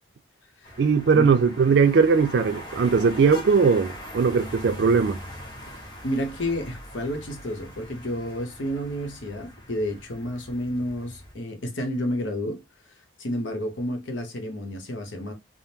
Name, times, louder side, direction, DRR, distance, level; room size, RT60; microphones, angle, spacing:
sound 1, 0.6-11.3, equal, 25° left, 0.9 m, -41 dB
voice 1, 0.8-5.2, right 5 dB, 70° right, 0.4 m, -19 dB
voice 2, 5.7-12.6 13.2-15.3, equal, 85° left, 0.9 m, -30 dB
3.5 x 2.0 x 2.7 m
head